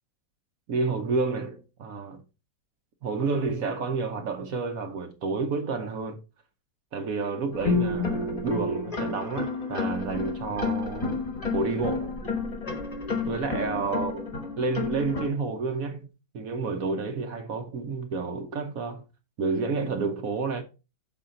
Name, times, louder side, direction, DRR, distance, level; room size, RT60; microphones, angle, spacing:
voice 1, 0.7-2.2 3.0-6.2 6.9-11.2 11.5-12.2 13.2-14.3 14.6-19.0 19.4-20.6, right 4 dB, 55° right, 1.2 m, -30 dB
sound 1, 7.5-15.3, left 4 dB, 25° left, 1.0 m, -30 dB
6.7 x 4.1 x 3.8 m
omnidirectional pair, 2.0 m